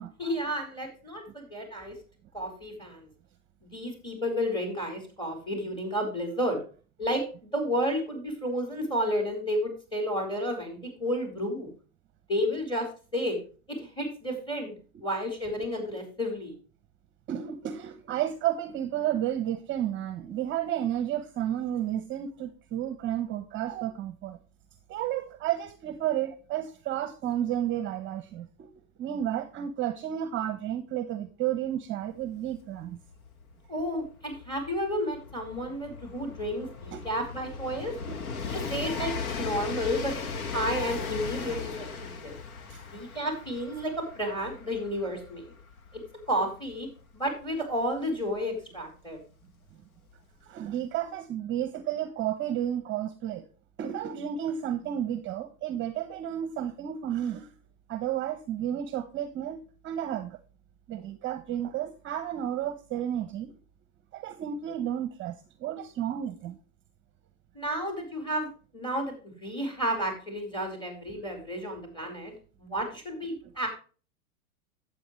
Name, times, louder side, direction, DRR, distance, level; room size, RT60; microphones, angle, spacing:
voice 1, 0.2-2.0 2.3-3.1 3.6-6.6 7.0-11.7 12.3-13.4 13.7-14.7 15.0-16.6 33.7-37.9 38.5-39.1 39.4-40.1 40.5-42.3 42.9-45.5 45.9-46.9 47.1-49.2 67.5-73.7, equal, 10° left, 2 dB, 4.5 m, -31 dB
voice 2, 17.3-24.4 24.9-28.7 29.0-33.0 36.9-37.0 38.1-38.2 41.4-41.6 42.7-42.8 50.4-53.5 53.8-57.5 57.9-60.4 60.9-63.5 64.1-65.3 65.6-66.6, right 11 dB, 30° right, 11 dB, 0.9 m, -32 dB
Train, 32.2-32.3 32.5-49.1 50.1-50.2, left 5 dB, 85° left, 1.6 m, -38 dB
12.0 x 8.3 x 3.2 m, 0.36 s
hypercardioid pair, 120°, 42 cm